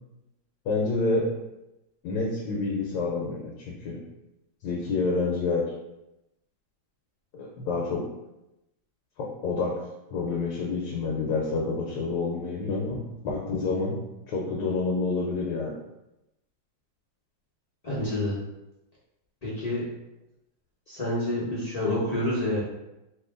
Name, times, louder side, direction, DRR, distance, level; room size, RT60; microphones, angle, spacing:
voice 1, 0.7-1.3 2.0-4.0 4.6-5.6 7.3-8.0 9.2-9.8 10.1-14.0 14.3-15.8, left 3 dB, 75° left, -2 dB, 1.3 m, -28 dB
voice 2, 17.8-18.3 19.4-19.8 20.9-22.6, left 1 dB, 50° left, -8 dB, 0.4 m, -28 dB
3.0 x 2.9 x 3.7 m, 0.93 s
omnidirectional pair, 2.2 m